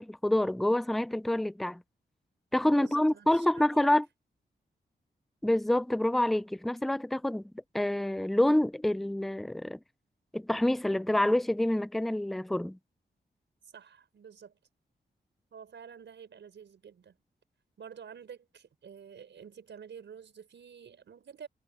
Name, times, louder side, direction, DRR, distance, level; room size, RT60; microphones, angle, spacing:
voice 1, 0.0-1.8 2.5-4.0 5.4-7.4 7.7-9.8 10.3-12.8, left 1 dB, ahead, 0.4 m, -27 dB
voice 2, 2.7-4.0 13.6-14.6 15.5-17.2 17.8-21.5, right 7 dB, 90° right, 5.1 m, -49 dB
wide cardioid pair, 135°, 18 cm